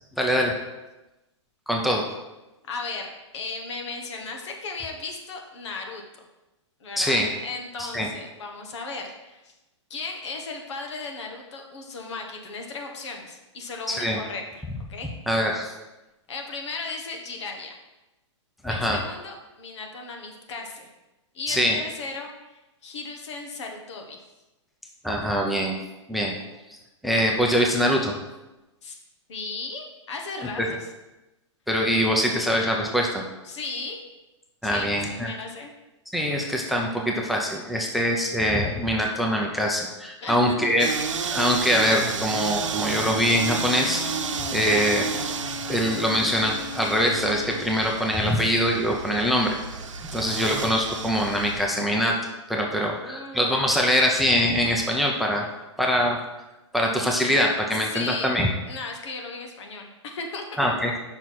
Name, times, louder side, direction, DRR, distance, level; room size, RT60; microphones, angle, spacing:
voice 1, 0.2-0.5 1.7-2.0 7.0-7.3 7.9-8.1 13.9-14.2 15.3-15.7 18.6-19.0 21.5-21.8 25.0-25.7 26.1-26.3 27.0-28.2 30.6-30.7 31.7-33.2 34.6-35.3 36.1-40.9 41.3-44.0 44.5-45.1 45.7-49.6 50.1-52.1 52.5-55.4 55.8-56.2 56.7-58.5 60.6-60.9, equal, ahead, 0 dB, 0.7 m, -23 dB
voice 2, 2.7-3.1 3.3-6.0 6.8-9.5 9.9-14.6 14.9-15.1 16.3-17.8 18.7-20.9 21.3-24.2 28.8-29.0 29.3-30.9 33.4-34.0 34.6-35.7 40.2-40.7 52.7-53.7 57.8-58.3 58.7-60.4, left 3 dB, 65° left, 2 dB, 1.5 m, -36 dB
sound 1, 40.8-51.6, right 6 dB, 75° right, 0.8 m, -32 dB
Bowed string instrument, 43.0-47.8, left 4 dB, 45° left, 1.5 m, -38 dB
5.6 x 4.6 x 6.0 m, 1.0 s
hypercardioid pair, 130°, 16 cm